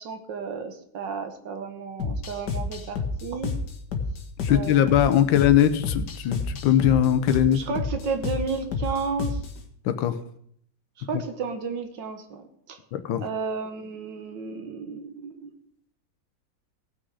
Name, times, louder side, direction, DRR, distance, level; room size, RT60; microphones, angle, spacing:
voice 1, 0.0-3.5 4.5-5.0 7.5-9.4 11.1-12.4 12.7-12.8 13.2-15.5, right 5 dB, 70° right, 6 dB, 1.8 m, -32 dB
sound 1, 2.0-9.6, left 4 dB, 60° left, 1.7 m, -30 dB
voice 2, 4.4-7.6 9.8-10.2 11.1-11.2 12.9-13.3, left 10 dB, 85° left, 10 dB, 1.5 m, -21 dB
17.0 x 6.2 x 4.8 m, 0.67 s
omnidirectional pair, 2.1 m